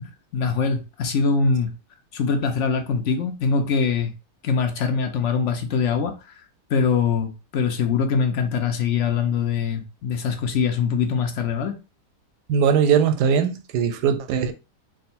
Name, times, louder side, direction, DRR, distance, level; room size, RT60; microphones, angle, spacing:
voice 1, 0.3-1.7 2.1-4.1 4.4-6.2 6.7-11.8, left 5 dB, 65° left, 0.8 m, -23 dB
voice 2, 12.5-14.5, right 7 dB, 85° right, 1.2 m, -20 dB
3.7 x 2.2 x 4.2 m
omnidirectional pair, 1.8 m